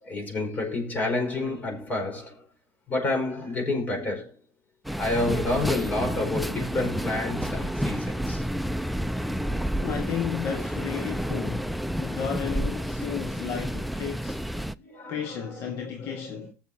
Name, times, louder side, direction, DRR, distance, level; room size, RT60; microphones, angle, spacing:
voice 1, 0.0-2.4 2.9-4.3 5.0-8.4 14.8-16.3, left 2 dB, 40° left, 5.0 m, -29 dB
sound 1, 4.8-14.7, equal, ahead, 0.5 m, -30 dB
voice 2, 9.8-14.4 15.1-16.5, left 8 dB, 65° left, 1.4 m, -33 dB
19.5 x 7.2 x 2.8 m
supercardioid pair, 85°, 5 cm